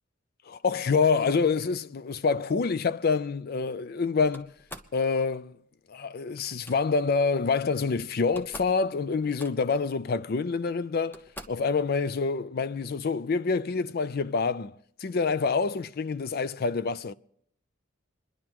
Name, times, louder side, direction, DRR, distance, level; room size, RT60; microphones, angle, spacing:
voice 1, 0.5-4.5 4.9-5.5 5.9-14.7 15.0-17.1, left 4 dB, 50° left, 0.4 m, -27 dB
Slam, 4.3-5.0 6.4-6.8 7.9-8.0 8.2-8.8 9.1-9.8 10.6-10.7 11.1-11.7, equal, 10° left, 0.7 m, -45 dB
27.5 x 11.0 x 3.0 m
head